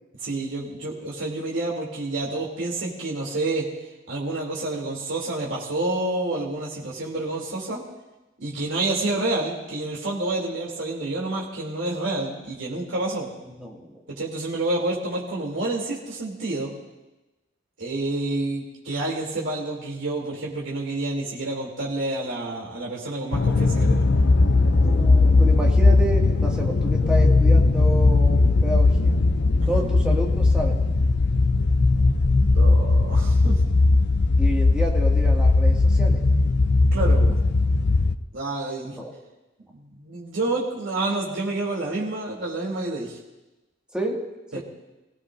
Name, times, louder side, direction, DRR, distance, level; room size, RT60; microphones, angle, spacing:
voice 1, 0.2-3.7 4.1-7.8 8.4-13.3 14.2-16.7 17.8-24.1 29.6-29.8 32.5-33.5 36.9-37.3 38.3-39.0 39.7-43.2 44.5-44.6, right 2 dB, 70° right, -4 dB, 3.2 m, -28 dB
voice 2, 13.6-14.0 24.7-29.2 29.7-30.8 34.4-36.3 38.8-39.2 43.9-44.2, right 1 dB, 5° right, -2 dB, 2.2 m, -30 dB
sound 1, 23.3-38.2, left 3 dB, 60° left, 0.6 m, -18 dB
27.5 x 17.5 x 2.7 m, 1.0 s
head